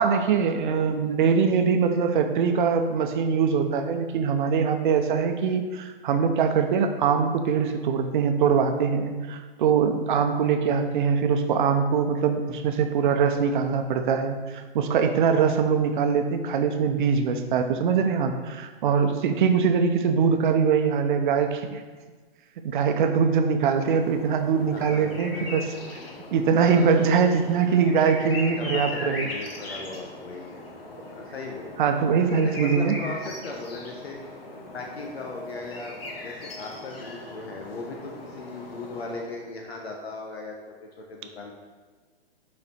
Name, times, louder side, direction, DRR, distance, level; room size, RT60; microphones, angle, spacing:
voice 1, 0.0-21.8 22.6-25.7 26.3-29.3 31.8-32.9, right 6 dB, 50° right, 6 dB, 0.8 m, -23 dB
sound 1, 23.6-39.5, left 2 dB, 65° left, 1.5 m, -39 dB
voice 2, 24.5-25.6 26.5-27.0 27.6-27.8 28.6-30.6 31.1-31.8 32.3-34.2 34.7-36.0 36.2-41.5, left 3 dB, 85° left, 0 dB, 1.0 m, -38 dB
6.4 x 4.3 x 4.3 m, 1.4 s
hypercardioid pair, 135°, 31 cm